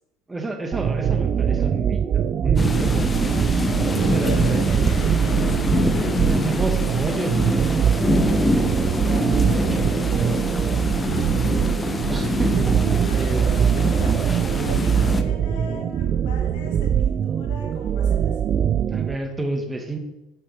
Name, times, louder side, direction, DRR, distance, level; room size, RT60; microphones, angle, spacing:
voice 1, 0.3-3.8 4.1-4.8 6.3-9.8 10.8-10.9 12.1-13.4 18.9-20.0, right 2 dB, 15° right, 4 dB, 1.4 m, -31 dB
sound 1, 0.7-19.2, right 8 dB, 45° right, 0.3 m, -22 dB
sound 2, 2.6-15.2, left 3 dB, 20° left, 0.8 m, -25 dB
voice 2, 3.9-6.1 10.9-11.6 12.3-12.5 13.0-18.4, left 3 dB, 75° left, -1 dB, 2.4 m, -40 dB
9.0 x 5.6 x 3.4 m, 0.96 s
hypercardioid pair, 75°, 0 cm